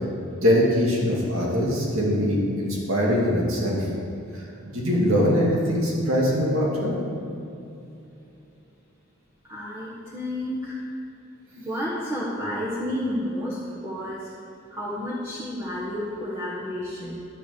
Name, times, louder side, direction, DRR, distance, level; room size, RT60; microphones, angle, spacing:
voice 1, 0.4-3.8 4.3-4.5 4.7-7.0, equal, 75° right, -3 dB, 2.4 m, -22 dB
voice 2, 9.4-10.8 11.5-14.3 14.7-17.2, left 1 dB, 10° right, -9 dB, 1.5 m, -31 dB
10.5 x 7.4 x 7.1 m, 2.7 s
head